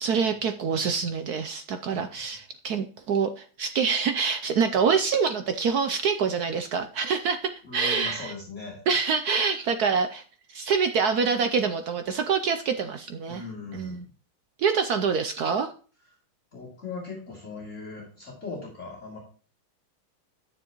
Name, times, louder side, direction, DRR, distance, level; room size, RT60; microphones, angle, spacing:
voice 1, 0.0-8.3 8.9-10.2 10.5-13.4 13.7-14.0 14.6-15.7, right 5 dB, 70° right, 8 dB, 1.0 m, -26 dB
voice 2, 7.6-8.8 13.3-14.0 16.5-19.2, left 4 dB, 35° left, -3 dB, 3.2 m, -39 dB
11.0 x 9.5 x 3.0 m, 0.40 s
omnidirectional pair, 2.2 m